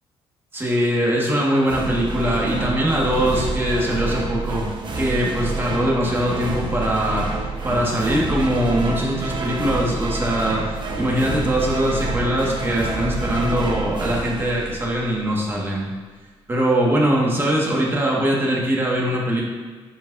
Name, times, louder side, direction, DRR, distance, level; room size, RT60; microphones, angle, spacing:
voice 1, 0.5-4.6 5.0-7.3 7.6-10.6 11.0-15.9 16.5-19.5, equal, 20° right, -3 dB, 1.7 m, -22 dB
sound 1, 1.7-15.3, right 2 dB, 50° right, 1.0 m, -27 dB
10.0 x 6.1 x 2.7 m, 1.4 s
cardioid pair, 115°, 10 cm